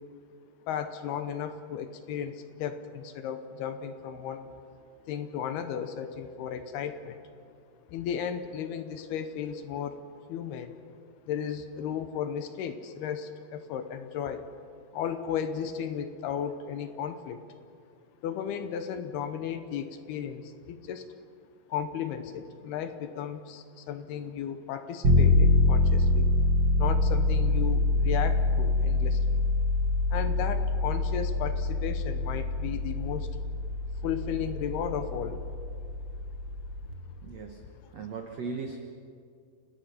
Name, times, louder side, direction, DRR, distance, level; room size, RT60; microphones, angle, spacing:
voice 1, 0.7-4.5 5.1-7.2 7.9-10.0 10.3-10.8 11.3-14.5 14.9-17.4 18.2-21.1 21.7-26.3 26.8-29.4 30.1-33.3 34.0-35.4 37.8-37.9, left 8 dB, 75° left, 9 dB, 2.7 m, -35 dB
sound 1, 25.0-36.9, left 2 dB, 55° right, 1.2 m, -25 dB
voice 2, 37.2-37.6 37.9-38.8, right 4 dB, 75° right, 3 dB, 1.5 m, -37 dB
29.5 x 18.5 x 5.8 m, 2.4 s
omnidirectional pair, 5.1 m